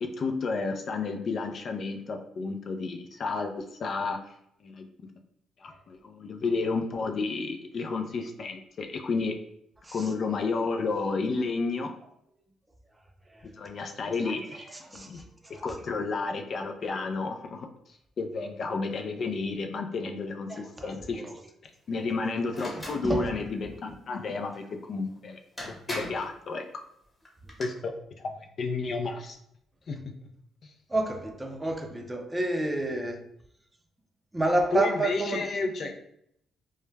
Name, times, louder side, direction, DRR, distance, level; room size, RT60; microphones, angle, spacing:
voice 1, 0.0-4.2 4.6-4.9 5.6-9.4 9.9-11.9 13.5-14.7 14.9-15.2 15.6-17.7 18.2-21.3 21.6-24.6 24.9-25.4 25.7-26.8 27.6-27.9 28.2-29.4 29.9-30.0 30.6-30.7 34.7-35.9, left 4 dB, 55° left, 0.3 m, -31 dB
voice 2, 14.2-15.6 20.5-21.3 22.7-23.4 30.9-33.2 34.3-35.5, right 2 dB, 15° right, 0.4 m, -30 dB
sound 1, 22.5-23.0 25.1-25.2 25.6-26.3 27.3-27.6, equal, 10° left, 0.9 m, -37 dB
2.2 x 2.1 x 3.1 m
cardioid pair, 90°, 0 cm